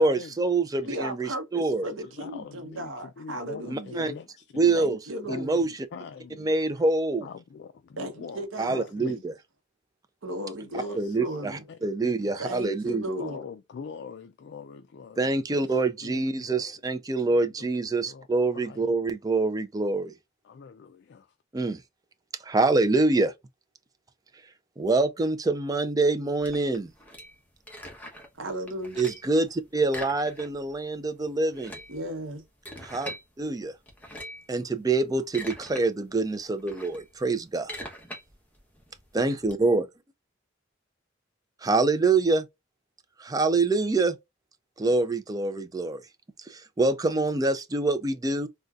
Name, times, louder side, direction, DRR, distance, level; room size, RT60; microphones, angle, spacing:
voice 1, 0.0-1.9 3.7-4.1 4.5-5.0 5.3-5.7 6.4-7.3 8.6-9.3 10.9-13.0 15.2-20.2 21.5-21.8 22.4-23.3 24.3-26.9 29.0-31.8 32.8-33.1 33.4-33.8 34.5-37.8 39.1-39.9 41.6-42.5 43.2-44.2 44.8-46.1 46.4-48.5, right 3 dB, 20° right, 0.4 m, -25 dB
voice 2, 0.8-4.1 4.7-5.6 8.0-8.9 10.2-11.6 12.4-13.4 28.4-29.1 31.9-32.5, right 1 dB, 90° right, 0.9 m, -35 dB
voice 3, 2.0-4.8 5.2-6.5 7.2-9.2 10.6-11.3 11.7-12.4 13.2-16.7 17.2-17.7 18.1-18.3 18.5-18.9 20.4-21.4, left 6 dB, 60° left, 0.3 m, -44 dB
sound 1, 26.4-28.4 28.7-29.3 29.9-30.8 31.0-31.1 31.4-33.2 33.9-34.5 35.0-35.8 36.2-39.5, equal, 10° left, 0.9 m, -42 dB
3.8 x 2.2 x 2.3 m
head